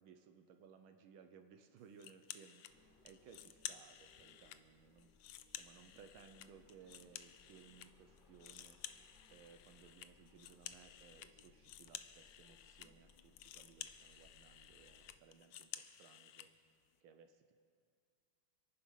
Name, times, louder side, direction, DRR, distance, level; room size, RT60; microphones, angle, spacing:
voice 1, 0.0-5.1 5.5-16.5 17.0-17.6, right 6 dB, 80° right, 7 dB, 1.6 m, -62 dB
sound 1, 2.0-2.7 3.1-4.6 5.0-7.9 8.2-16.5, left 11 dB, 75° left, 1.2 m, -53 dB
sound 2, 2.7-15.2, left 3 dB, 40° left, 0.7 m, -69 dB
26.5 x 9.6 x 5.7 m, 2.2 s
omnidirectional pair, 2.3 m